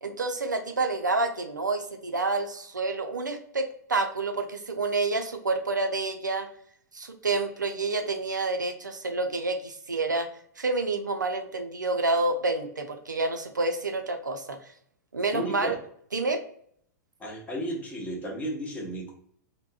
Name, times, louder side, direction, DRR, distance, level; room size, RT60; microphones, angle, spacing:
voice 1, 0.0-6.5 6.9-10.3 10.6-14.6 15.1-15.8 16.1-16.4, right 3 dB, 85° right, 6 dB, 0.4 m, -28 dB
voice 2, 15.3-15.8 17.2-19.1, right 1 dB, 15° left, -2 dB, 0.8 m, -33 dB
3.4 x 2.1 x 2.3 m, 0.64 s
figure-of-eight pair, 100°, 10 cm